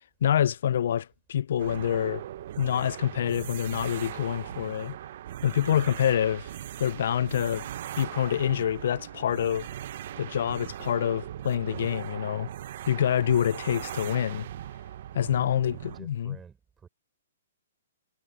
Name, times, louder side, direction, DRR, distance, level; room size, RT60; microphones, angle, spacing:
voice 1, 0.2-2.2 2.6-5.0 5.4-6.5 6.8-7.7 8.0-9.7 10.2-12.5 12.9-14.5 15.1-16.4, left 9 dB, 60° left, 0.4 m, -26 dB
sound 1, 1.6-16.0, right 11 dB, 50° right, 0.6 m, -39 dB
Bowed string instrument, 6.5-12.4, right 8 dB, 70° right, 2.4 m, -53 dB
voice 2, 15.2-16.9, right 6 dB, 10° right, 4.3 m, -51 dB
hypercardioid pair, 165°, 0 cm